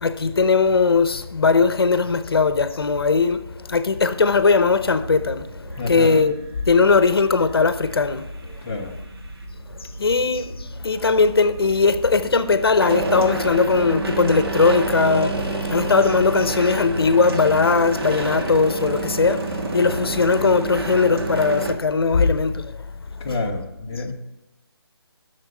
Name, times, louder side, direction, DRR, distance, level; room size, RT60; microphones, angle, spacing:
voice 1, 0.0-6.4 6.7-8.2 10.0-22.7, left 4 dB, 65° left, 0.8 m, -19 dB
sound 1, 5.0-21.7, right 2 dB, 70° right, 1.7 m, -29 dB
voice 2, 5.7-6.3 8.6-9.0 23.2-24.1, left 3 dB, 15° left, 0.6 m, -28 dB
8.7 x 6.7 x 7.5 m
hypercardioid pair, 170°, 13 cm